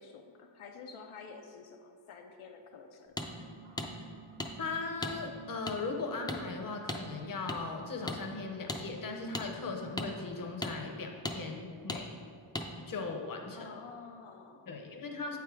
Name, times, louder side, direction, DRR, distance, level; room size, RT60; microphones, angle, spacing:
voice 1, 0.0-3.1 13.5-14.9, left 5 dB, 85° left, 4 dB, 0.6 m, -50 dB
sound 1, 3.1-10.3, right 7 dB, 60° right, 0.9 m, -55 dB
sound 2, 3.2-3.3 3.8-3.9 4.4-4.5 5.0-5.1 5.7-5.8 6.3-6.4 6.9-7.0 7.5-7.6 8.1-8.2 8.7-8.8 9.3-9.5 10.0-10.1 10.6-10.7 11.2-11.4 11.9-12.0 12.5-12.7, left 1 dB, 10° left, 0.3 m, -36 dB
voice 2, 4.6-12.1 12.9-13.7 14.7-15.4, left 4 dB, 45° left, 3 dB, 0.7 m, -38 dB
8.2 x 3.6 x 4.6 m, 2.2 s
wide cardioid pair, 145°, 49 cm